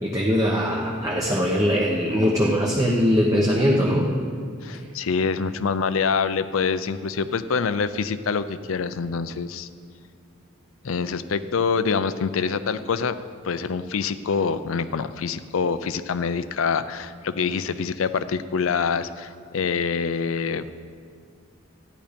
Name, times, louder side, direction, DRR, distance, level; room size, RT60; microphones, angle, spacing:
voice 1, 0.0-4.1, equal, 15° right, -3 dB, 1.0 m, -21 dB
voice 2, 4.6-9.7 10.8-13.2 13.4-20.8, left 5 dB, 75° left, 12 dB, 0.5 m, -25 dB
13.0 x 10.0 x 5.2 m, 2.2 s
head